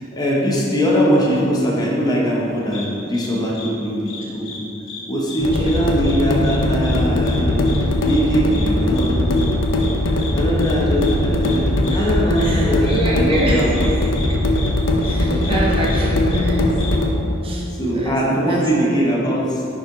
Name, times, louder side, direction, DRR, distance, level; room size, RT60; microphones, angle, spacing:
voice 1, 0.0-4.7 5.1-13.9 15.1-15.6 17.7-19.7, equal, 20° left, -3 dB, 0.8 m, -21 dB
sound 1, 2.7-2.9 3.1-3.3 3.5-3.7 4.1-4.6 4.9-5.0 5.3-5.8 6.0-6.2 6.4-6.6 6.8-7.0 7.3-7.4 7.7-7.8 8.1-8.2 8.5-8.6 9.0-9.1 9.4-9.5 9.8-9.9 10.2-10.3 10.6-10.7 11.0-11.1 11.4-11.6 11.8-12.0 12.4-12.5 12.9-13.0 13.3-13.5 13.7-13.9 14.1-14.3 14.6-14.7 15.0-15.1 15.4-15.5 15.8-16.0 16.3-16.4 16.8-16.9, left 5 dB, 90° left, 1.0 m, -34 dB
sound 2, 5.4-17.1, left 1 dB, 70° left, 0.6 m, -19 dB
voice 2, 12.4-13.7 15.0-16.8 17.4-17.7 17.9-18.6 18.9-19.0, right 1 dB, 30° right, -4 dB, 0.6 m, -26 dB
5.4 x 4.9 x 3.9 m, 2.9 s
head